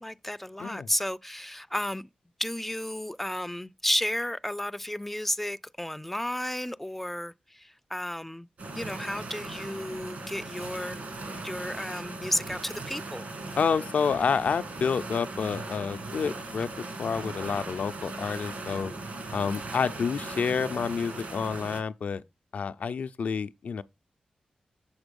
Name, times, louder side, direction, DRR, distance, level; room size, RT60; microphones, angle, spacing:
voice 1, 0.0-2.1 2.4-8.5 8.7-11.0 11.4-13.3, left 1 dB, 5° left, 0.3 m, -33 dB
sound 1, 8.6-21.8, right 2 dB, 70° right, 1.9 m, -38 dB
voice 2, 13.6-16.7 17.0-18.9 19.3-22.2 22.5-23.8, left 6 dB, 70° left, 0.5 m, -29 dB
7.1 x 4.1 x 5.2 m
cardioid pair, 75°, 3 cm